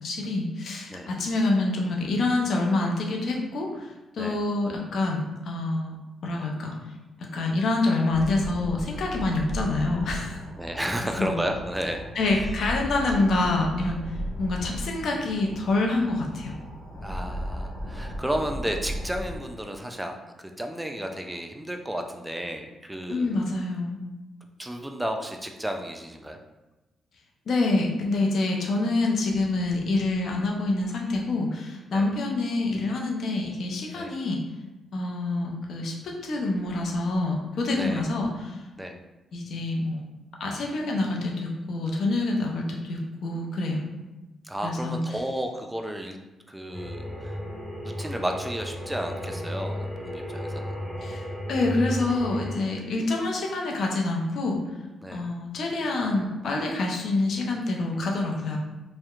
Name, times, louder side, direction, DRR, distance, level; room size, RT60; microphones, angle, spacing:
voice 1, 0.0-5.9 6.2-6.7 7.3-10.4 11.2-11.3 12.1-14.0 14.4-16.5 23.1-24.0 27.5-34.4 34.9-38.6 39.3-40.0 40.4-43.8 44.6-45.0 51.0-51.2 51.5-54.6 55.1-58.6, left 2 dB, 65° left, 0 dB, 0.5 m, -26 dB
sound 1, 8.1-19.4, equal, 30° right, 1.1 m, -36 dB
voice 2, 10.6-12.1 17.0-23.4 24.6-26.4 31.9-32.1 33.9-34.1 37.7-38.0 38.8-39.0 44.4-46.2 46.5-47.4 47.8-50.8 55.0-55.2, right 1 dB, 10° right, 4 dB, 0.4 m, -32 dB
sound 2, 46.7-52.5, equal, 30° left, 0.8 m, -34 dB
2.7 x 2.1 x 2.4 m, 1.1 s
supercardioid pair, 55°, 0 cm